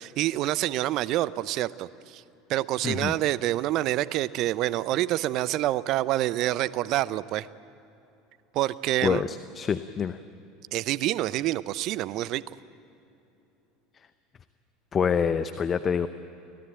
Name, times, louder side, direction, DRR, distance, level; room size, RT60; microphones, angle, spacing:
voice 1, 0.0-2.2 2.5-7.5 8.5-9.2 10.7-12.4, right 15 dB, 50° right, 19 dB, 0.6 m, -27 dB
voice 2, 2.8-3.1 9.0-10.2 13.9-14.1 14.9-16.1, left 7 dB, 30° left, 12 dB, 0.7 m, -26 dB
24.5 x 17.0 x 8.9 m, 2.9 s
figure-of-eight pair, 75°, 0 cm